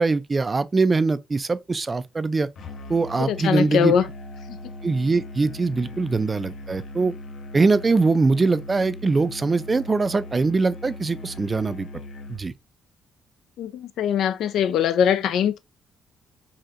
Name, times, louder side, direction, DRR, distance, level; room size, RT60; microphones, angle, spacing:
voice 1, 0.0-2.5 2.9-3.9 4.8-7.1 7.5-11.9 12.3-12.5, right 3 dB, 30° right, 0.3 m, -22 dB
Musical instrument, 2.6-12.5, left 1 dB, 65° left, 0.8 m, -39 dB
voice 2, 3.2-4.1 4.5-4.7 13.6-15.6, left 8 dB, 80° left, 0.4 m, -22 dB
4.1 x 2.8 x 2.4 m
cardioid pair, 90°, 0 cm